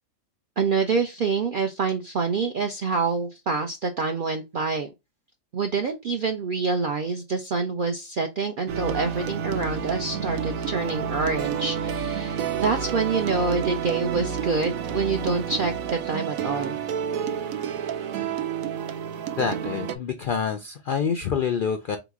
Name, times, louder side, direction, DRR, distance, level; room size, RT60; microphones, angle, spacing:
voice 1, 0.6-4.9 5.5-16.8, right 4 dB, 65° right, 0.5 m, -26 dB
sound 1, 8.7-20.0, right 7 dB, 85° right, 1.1 m, -29 dB
voice 2, 19.4-22.0, left 6 dB, 70° left, 0.5 m, -27 dB
3.9 x 2.9 x 3.5 m
omnidirectional pair, 1.4 m